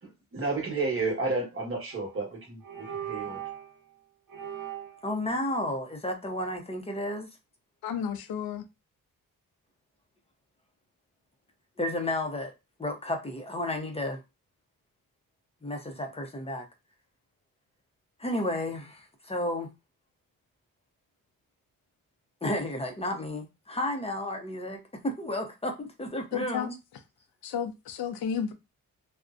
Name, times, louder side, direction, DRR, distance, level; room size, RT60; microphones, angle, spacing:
voice 1, 0.0-3.5, right 3 dB, 40° right, 1.1 m, -32 dB
sound 1, 1.9-2.2 2.6-3.7 4.3-5.1, right 10 dB, 65° right, 0.7 m, -39 dB
voice 2, 5.0-7.3 11.8-12.5 12.8-14.2 15.6-16.6 18.2-19.7 22.4-26.8, left 1 dB, 15° left, 0.6 m, -32 dB
voice 3, 7.8-8.6 26.3-26.7 27.4-28.5, left 8 dB, 85° left, 0.5 m, -32 dB
2.5 x 2.0 x 2.4 m
cardioid pair, 100°, 35 cm